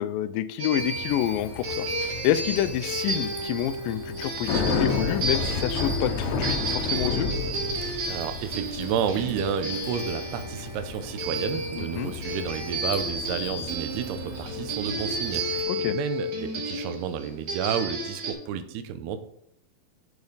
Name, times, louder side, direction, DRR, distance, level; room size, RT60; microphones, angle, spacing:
voice 1, 0.0-7.3 11.8-12.1 15.7-16.0, left 12 dB, 90° left, 11 dB, 1.9 m, -28 dB
sound 1, 0.6-18.3, right 1 dB, 50° right, 2.9 m, -32 dB
Bicycle, 0.8-15.6, left 4 dB, 70° left, 1.9 m, -33 dB
voice 2, 7.8-19.2, right 8 dB, 85° right, 9 dB, 2.8 m, -31 dB
9.5 x 7.0 x 4.0 m, 0.73 s
omnidirectional pair, 4.5 m